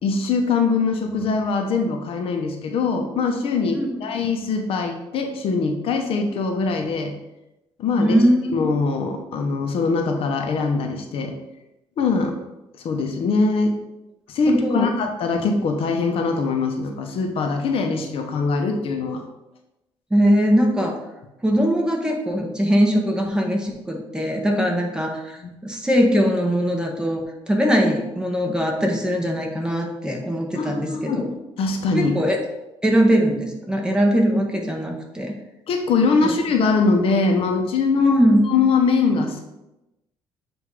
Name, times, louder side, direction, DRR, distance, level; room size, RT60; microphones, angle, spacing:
voice 1, 0.0-7.1 7.8-8.2 8.5-11.3 12.0-12.4 12.8-13.8 14.3-19.2 25.4-25.5 30.5-31.3 31.6-32.1 35.7-38.1 38.4-39.4, left 4 dB, 60° left, 4 dB, 0.8 m, -22 dB
voice 2, 8.0-8.5 14.5-14.9 20.1-21.0 21.4-31.3 31.9-32.4 32.8-35.3 36.2-36.3 38.0-38.4, equal, 5° right, 1 dB, 1.0 m, -21 dB
7.7 x 2.6 x 4.7 m, 0.93 s
cardioid pair, 130°, 10 cm